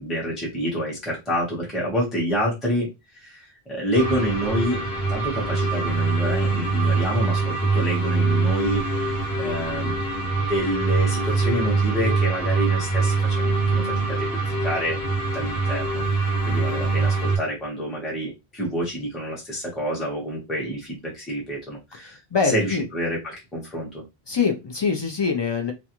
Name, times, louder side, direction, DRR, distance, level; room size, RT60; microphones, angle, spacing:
voice 1, 0.0-2.9 3.1-4.8 5.1-8.8 9.4-13.8 14.1-14.3 14.6-15.0 15.3-22.2 22.4-24.0, equal, ahead, -4 dB, 0.8 m, -28 dB
sound 1, 3.9-17.4, right 3 dB, 75° left, 1.1 m, -23 dB
voice 2, 22.3-22.8 24.3-25.7, left 5 dB, 40° left, 3 dB, 0.3 m, -23 dB
2.5 x 2.2 x 2.9 m, 0.23 s
omnidirectional pair, 1.0 m